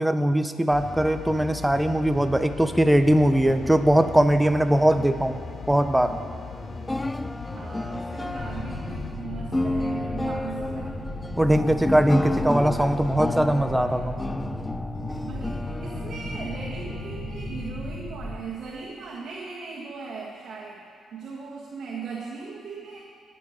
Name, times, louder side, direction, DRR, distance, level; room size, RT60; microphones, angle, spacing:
voice 1, 0.0-5.4 5.7-6.2 11.4-14.2, right 1 dB, 5° right, 9 dB, 0.7 m, -21 dB
sound 1, 0.7-9.1, left 4 dB, 35° left, 0.9 m, -39 dB
sound 2, 3.3-17.9, left 2 dB, 15° left, 0.3 m, -33 dB
voice 2, 7.5-11.0 13.9-14.0 15.2-20.8 21.1-23.0, right 5 dB, 60° right, -4 dB, 1.7 m, -38 dB
sound 3, 8.3-18.3, left 1 dB, 70° left, 2.9 m, -35 dB
19.0 x 6.9 x 5.1 m, 2.3 s
cardioid pair, 90°, 0 cm